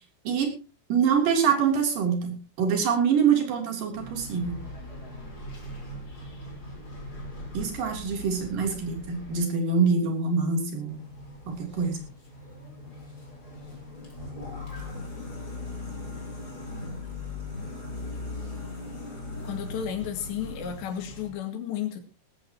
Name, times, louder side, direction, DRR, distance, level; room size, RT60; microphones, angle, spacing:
voice 1, 0.2-0.6 0.9-4.6 7.5-10.9 11.5-12.0, right 6 dB, 55° right, 4.8 m, -25 dB
sound 1, 3.9-9.4 10.9-21.3, left 2 dB, 20° left, 4.6 m, -39 dB
voice 2, 19.4-22.0, left 9 dB, 90° left, 4.3 m, -33 dB
18.0 x 14.5 x 3.0 m
omnidirectional pair, 4.9 m